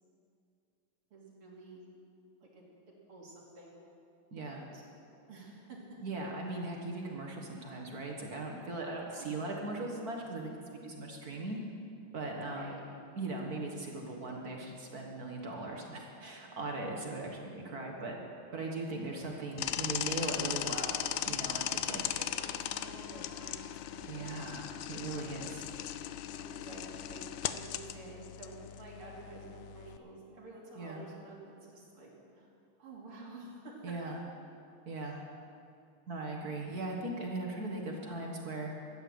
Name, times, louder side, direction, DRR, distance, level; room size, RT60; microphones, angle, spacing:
voice 1, 1.1-1.9 2.4-2.6 3.1-3.8 4.6-4.8 5.3-5.8 9.1-9.3 12.5-12.8 21.9-25.5 26.2-32.5 32.8-33.7, right 2 dB, 90° right, -3 dB, 3.5 m, -51 dB
voice 2, 4.3-4.6 6.0-11.6 12.1-12.8 13.2-18.1 18.5-22.0 24.1-25.6 30.8-31.0 33.8-34.2 34.9-35.2 36.1-38.7, right 2 dB, 50° right, 0 dB, 1.7 m, -39 dB
sound 1, 19.6-30.0, left 12 dB, 75° left, 1.1 m, -38 dB
13.0 x 9.1 x 7.9 m, 2.5 s
omnidirectional pair, 2.4 m